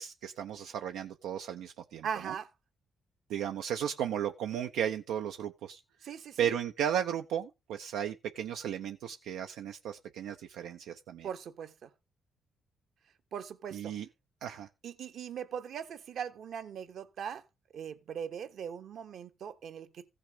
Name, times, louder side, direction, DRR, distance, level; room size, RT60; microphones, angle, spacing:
voice 1, 0.0-2.3 3.3-5.8 6.4-11.3 13.7-14.1 14.4-14.7, right 9 dB, 85° right, 0.8 m, -35 dB
voice 2, 2.0-2.5 6.0-6.5 11.2-11.9 13.3-13.9 14.8-17.4 17.7-20.1, right 8 dB, 65° right, 1.4 m, -40 dB
15.0 x 6.4 x 5.1 m
cardioid pair, 90°, 0 cm